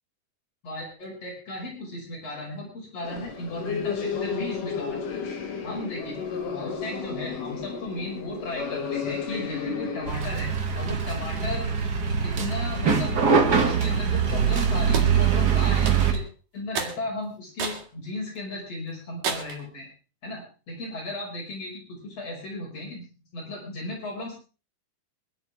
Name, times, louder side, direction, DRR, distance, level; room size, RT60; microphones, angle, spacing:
voice 1, 0.6-5.0 5.6-6.2 6.4-11.7 12.2-13.2 13.6-16.2 16.5-19.9 20.2-24.3, left 2 dB, 45° left, -4 dB, 6.9 m, -35 dB
sound 1, 3.0-10.1, left 6 dB, 75° left, 3.5 m, -32 dB
sound 2, 10.1-16.1, right 6 dB, 40° right, 1.4 m, -23 dB
sound 3, 14.9-15.2 15.9-16.3 16.8-17.0 17.6-17.9 18.4-18.5 19.2-19.6, right 6 dB, 90° right, 3.9 m, -31 dB
24.0 x 12.0 x 3.6 m, 0.34 s
omnidirectional pair, 3.8 m